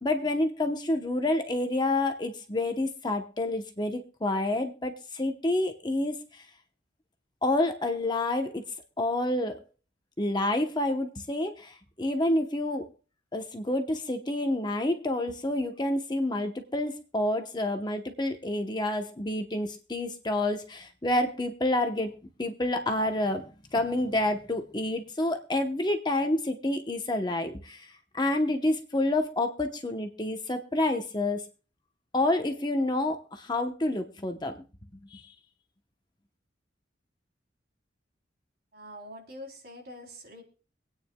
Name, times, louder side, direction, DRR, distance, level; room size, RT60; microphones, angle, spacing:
voice 1, 0.0-6.4 7.4-8.6 9.0-9.6 10.2-12.8 13.3-22.1 22.4-31.4 32.1-34.5 35.1-35.2, left 1 dB, 25° left, 5 dB, 0.9 m, -28 dB
voice 2, 38.7-40.4, equal, 55° right, 1 dB, 3.4 m, -45 dB
25.0 x 9.3 x 2.3 m, 0.35 s
head